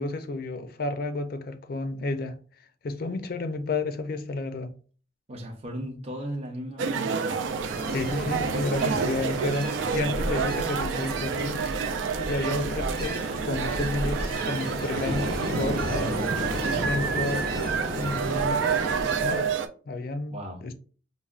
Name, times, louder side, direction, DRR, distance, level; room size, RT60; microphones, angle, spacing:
voice 1, 0.0-2.4 2.8-4.7 7.9-11.7 12.3-16.1 16.8-17.5 18.0-18.6 19.2-19.5 19.9-20.7, left 2 dB, 50° left, 0.4 m, -31 dB
voice 2, 5.3-7.4 8.9-9.0 10.0-10.2 20.3-20.6, equal, 35° right, 0.6 m, -37 dB
sound 1, 6.8-19.7, right 6 dB, 80° right, 0.4 m, -29 dB
Ocean, 7.3-19.5, right 1 dB, 55° right, 0.9 m, -33 dB
5.4 x 2.1 x 2.4 m
head